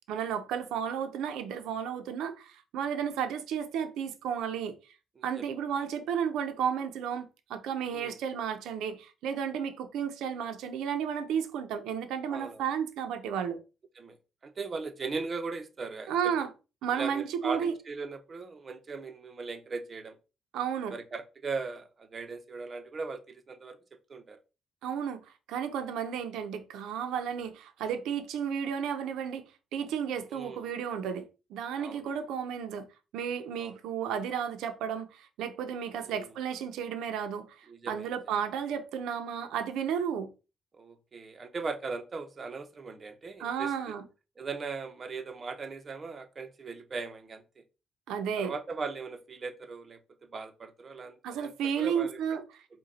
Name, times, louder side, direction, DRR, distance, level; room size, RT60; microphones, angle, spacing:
voice 1, 0.1-4.8 5.2-13.6 16.1-16.5 16.8-17.8 20.5-21.0 24.8-25.2 25.5-29.5 29.7-32.9 33.1-40.3 43.4-44.1 48.1-48.5 51.2-52.4, right 8 dB, 90° right, 0.6 m, -33 dB
voice 2, 12.3-12.7 14.0-14.2 14.4-16.3 16.9-20.2 20.9-23.8 24.1-24.4 30.3-30.7 31.8-32.0 33.6-33.7 35.9-36.3 37.7-38.1 40.7-43.7 44.4-47.6 48.4-50.0 50.3-52.2, right 4 dB, 40° right, 0.8 m, -39 dB
4.8 x 2.3 x 4.1 m
cardioid pair, 90°, 0 cm